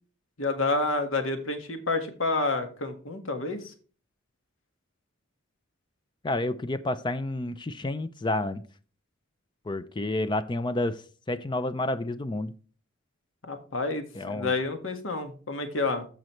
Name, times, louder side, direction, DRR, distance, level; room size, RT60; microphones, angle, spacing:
voice 1, 0.4-3.7 13.4-16.0, left 3 dB, 70° left, 7 dB, 1.6 m, -29 dB
voice 2, 6.2-8.6 9.7-12.5 14.1-14.5, left 2 dB, 20° left, 13 dB, 0.4 m, -30 dB
14.0 x 5.2 x 3.1 m, 0.40 s
head